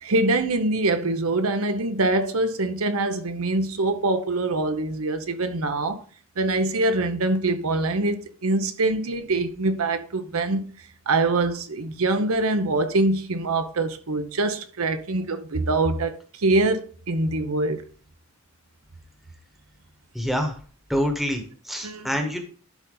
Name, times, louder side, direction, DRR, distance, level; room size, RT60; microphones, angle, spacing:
voice 1, 0.0-6.0 6.4-10.6 11.1-17.8 21.8-22.1, right 2 dB, 75° right, 0.8 m, -24 dB
voice 2, 20.1-20.5 20.9-22.4, equal, ahead, 1.2 m, -26 dB
12.0 x 4.1 x 3.8 m
head